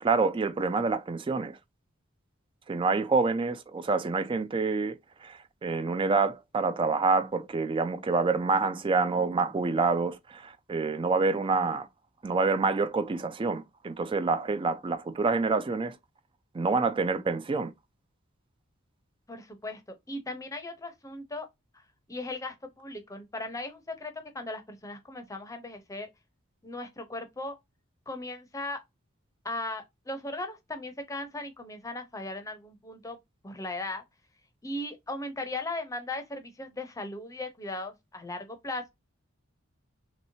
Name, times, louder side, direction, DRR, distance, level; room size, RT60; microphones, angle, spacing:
voice 1, 0.0-1.6 2.7-11.9 12.2-16.0 16.5-17.7, right 4 dB, 25° right, 0.3 m, -27 dB
voice 2, 19.3-19.8 20.1-21.5 22.1-26.1 26.6-27.6 28.1-28.8 29.4-33.2 33.4-34.0 34.6-38.9, left 2 dB, 15° left, 0.6 m, -37 dB
3.1 x 2.9 x 2.6 m
head